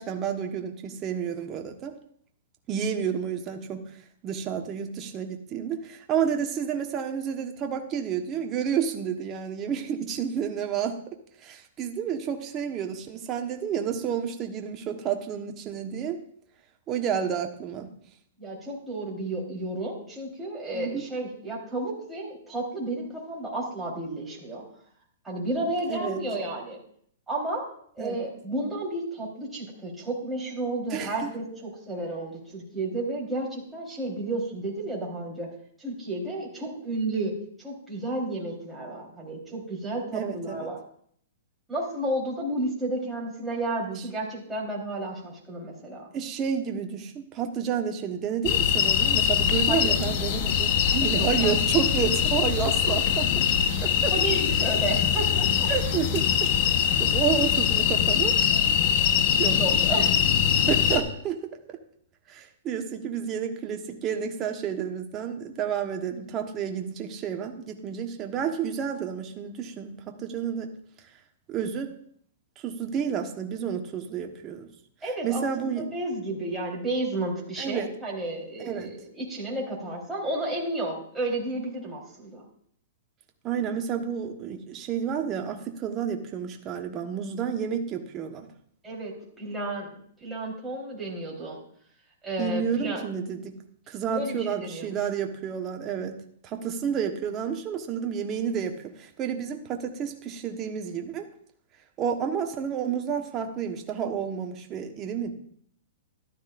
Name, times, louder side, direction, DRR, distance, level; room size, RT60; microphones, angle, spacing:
voice 1, 0.0-1.9 2.7-3.9 4.2-11.1 11.4-16.2 16.9-17.9 20.7-21.0 25.9-26.2 28.0-28.2 30.9-31.3 40.1-40.7 46.1-53.3 53.8-54.1 55.7-58.4 59.4-59.6 60.7-61.8 62.3-70.7 71.5-71.9 72.6-74.7 75.2-75.9 77.6-77.9 78.6-78.9 83.4-88.5 92.4-93.5 93.9-101.3 102.0-105.3, right 7 dB, 30° right, 4 dB, 1.2 m, -30 dB
voice 2, 18.4-24.6 25.2-26.8 27.3-27.7 28.0-35.5 35.8-40.8 41.7-46.0 49.7-49.9 51.1-51.6 52.8-53.0 54.1-55.7 59.5-60.1 75.0-82.4 88.8-89.9 90.2-91.6 92.2-93.0 94.1-94.9, right 2 dB, 10° right, -4 dB, 3.9 m, -32 dB
sound 1, 48.4-61.0, left 9 dB, 50° left, 1.0 m, -23 dB
13.5 x 12.0 x 2.6 m, 0.62 s
hypercardioid pair, 130°, 0 cm